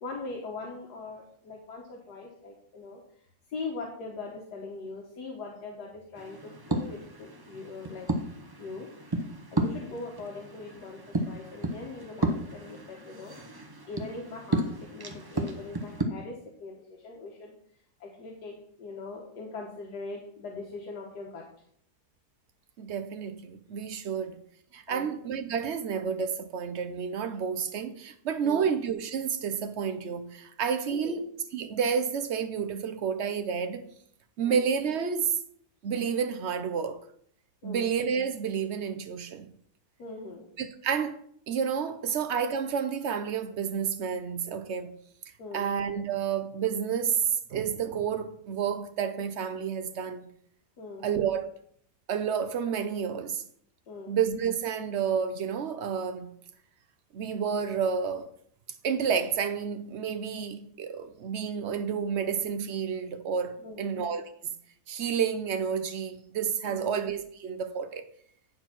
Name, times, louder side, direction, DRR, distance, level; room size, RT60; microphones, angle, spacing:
voice 1, 0.0-3.0 3.5-8.1 8.6-9.2 9.5-13.3 13.9-17.5 18.0-21.4 24.9-25.1 28.4-28.7 30.8-31.2 34.4-34.6 37.6-37.9 40.0-40.5 42.1-42.2 45.4-45.7 50.8-51.1 53.9-54.2 63.6-64.0 66.7-67.0, left 3 dB, 75° left, 1.7 m, -41 dB
sound 1, 6.2-16.0, right 2 dB, 40° right, 0.3 m, -34 dB
voice 2, 22.8-24.4 24.7-31.2 31.5-33.9 34.4-35.3 35.8-37.0 37.6-39.5 40.6-41.2 41.5-44.9 45.5-47.2 47.5-50.2 51.0-51.5 52.1-53.4 54.1-56.3 57.1-58.3 58.8-64.5 64.9-68.1, right 7 dB, 60° right, 0.8 m, -30 dB
9.2 x 4.5 x 5.9 m
omnidirectional pair, 1.7 m